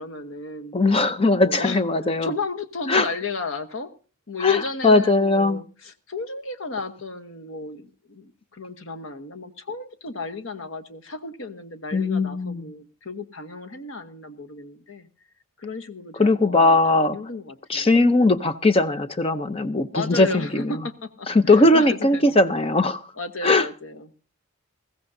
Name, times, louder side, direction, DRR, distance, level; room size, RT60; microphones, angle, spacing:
voice 1, 0.0-0.7 1.4-1.8 2.2-3.9 4.3-15.1 15.6-17.9 19.9-22.3 23.2-24.3, left 3 dB, 60° left, 1.1 m, -34 dB
voice 2, 0.7-2.3 2.9-3.1 4.4-5.6 11.9-12.7 16.2-17.2 17.7-20.7 21.3-23.0 23.4-23.7, left 2 dB, 25° left, 0.6 m, -19 dB
20.0 x 15.5 x 2.7 m
head